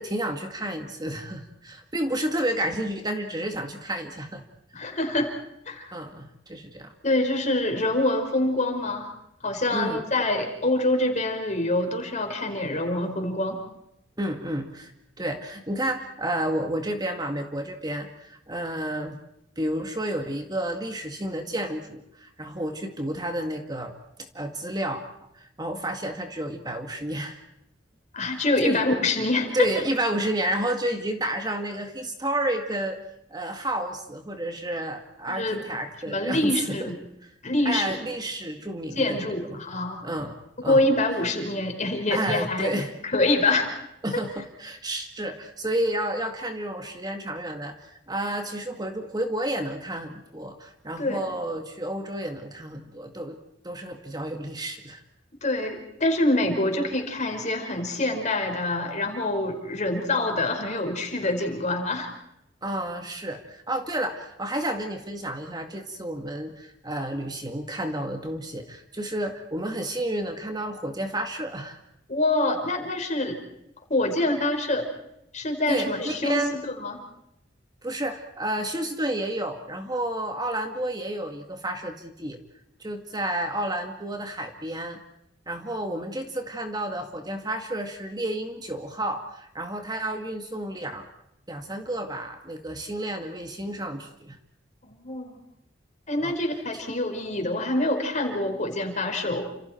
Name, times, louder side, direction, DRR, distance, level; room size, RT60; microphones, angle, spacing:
voice 1, 0.0-4.4 5.9-6.9 9.7-10.0 14.2-14.9 15.2-19.2 19.6-23.9 24.3-25.0 25.4-27.4 28.3-28.8 29.5-33.0 33.3-36.9 37.7-39.6 40.0-40.8 42.1-42.9 44.0-53.4 53.6-55.0 56.8-57.0 62.6-71.8 75.7-76.5 77.8-82.4 82.8-85.0 85.5-91.1 91.5-94.4 96.2-96.3 96.7-96.8, right 1 dB, 20° right, 5 dB, 2.1 m, -31 dB
voice 2, 4.7-5.3 5.7-5.8 7.0-9.1 9.4-13.6 28.1-29.7 35.3-35.6 36.0-37.0 37.4-37.9 38.9-40.0 40.6-42.8 43.0-43.7 44.1-44.2 51.0-51.3 55.4-62.1 72.1-73.4 73.9-74.9 75.3-77.0 94.9-95.3 96.1-99.4, left 2 dB, 40° left, 4 dB, 5.2 m, -25 dB
29.5 x 28.0 x 4.6 m, 0.80 s
head